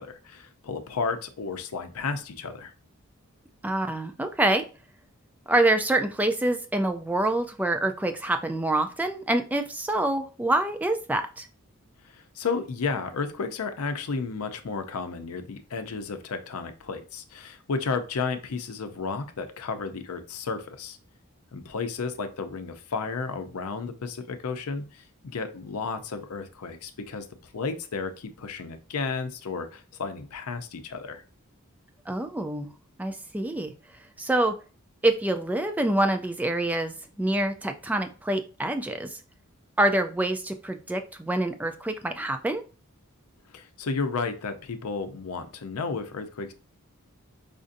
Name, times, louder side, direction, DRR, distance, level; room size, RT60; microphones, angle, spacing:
voice 1, 0.0-2.7 12.0-21.0 21.5-27.3 27.5-31.2 43.5-46.5, left 4 dB, 85° left, 9 dB, 0.5 m, -32 dB
voice 2, 3.6-4.6 5.5-11.5 32.1-32.7 33.0-33.7 34.2-34.5 35.0-39.2 39.8-42.6, right 1 dB, 5° right, 6 dB, 0.3 m, -26 dB
5.0 x 2.6 x 2.5 m, 0.35 s
head